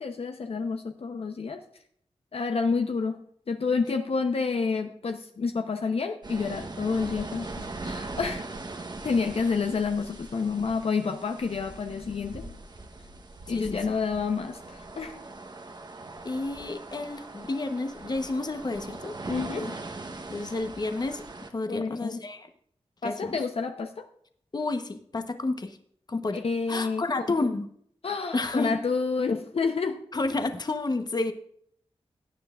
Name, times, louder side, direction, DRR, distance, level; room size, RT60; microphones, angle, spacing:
voice 1, 0.0-1.6 2.3-3.2 3.5-8.5 9.0-12.5 13.5-15.2 19.3-19.7 21.7-22.2 23.0-24.1 26.3-27.3 28.0-30.0, left 4 dB, 65° left, 5 dB, 0.9 m, -29 dB
sound 1, 6.2-21.5, right 2 dB, 40° right, 1.1 m, -41 dB
voice 2, 16.2-19.1 19.6-19.7 20.3-21.2 21.5-22.5 23.0-23.4 24.5-25.8 26.1-26.4 26.7-27.7 28.3-28.8 30.1-31.3, left 2 dB, 40° left, 7 dB, 1.1 m, -30 dB
16.0 x 9.5 x 2.5 m, 0.65 s
wide cardioid pair, 80°, 11 cm